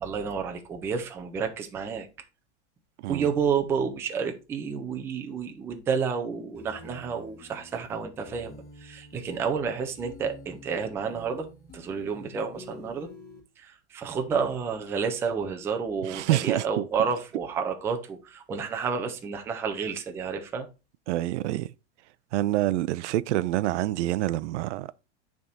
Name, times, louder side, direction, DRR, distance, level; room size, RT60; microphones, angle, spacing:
voice 1, 0.0-2.1 3.1-11.5 11.7-13.1 13.6-20.7, right 6 dB, 10° right, 0.3 m, -30 dB
sound 1, 6.5-13.4, left 2 dB, 25° left, 2.0 m, -49 dB
voice 2, 16.1-16.8 21.1-21.7 22.3-24.9, right 15 dB, 80° right, 0.5 m, -27 dB
8.7 x 3.5 x 4.0 m
supercardioid pair, 160°, 35 cm